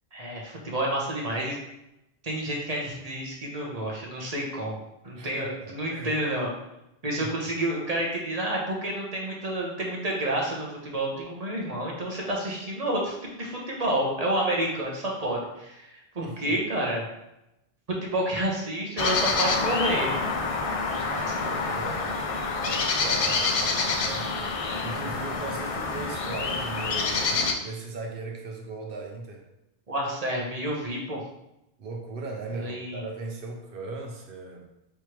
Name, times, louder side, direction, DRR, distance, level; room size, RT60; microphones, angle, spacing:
voice 1, 0.1-1.6 2.2-4.8 5.0-6.5 7.0-17.0 17.9-20.1 20.8-20.9 29.9-31.2 32.5-33.0, right 1 dB, 40° right, -2 dB, 1.0 m, -29 dB
voice 2, 5.1-6.1 7.2-7.3 16.2-16.6 21.1-22.2 22.6-24.3 24.8-29.5 31.8-34.6, right 3 dB, 65° right, 1 dB, 0.9 m, -38 dB
sound 1, 19.0-27.5, left 4 dB, 50° left, 0.4 m, -27 dB
4.7 x 3.4 x 3.0 m, 0.87 s
omnidirectional pair, 1.0 m